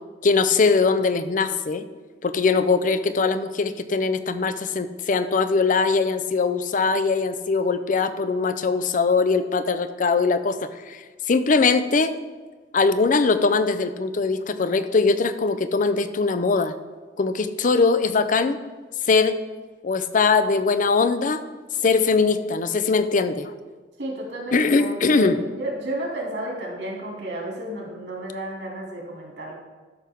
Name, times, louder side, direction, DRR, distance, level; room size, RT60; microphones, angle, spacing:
voice 1, 0.2-1.8 2.2-12.1 12.7-16.7 17.2-18.6 19.0-19.3 19.8-21.4 21.8-23.5 24.5-25.4, left 4 dB, 50° left, 11 dB, 0.5 m, -21 dB
voice 2, 24.0-29.5, right 1 dB, 85° right, -2 dB, 2.6 m, -32 dB
13.0 x 6.0 x 3.6 m, 1.4 s
head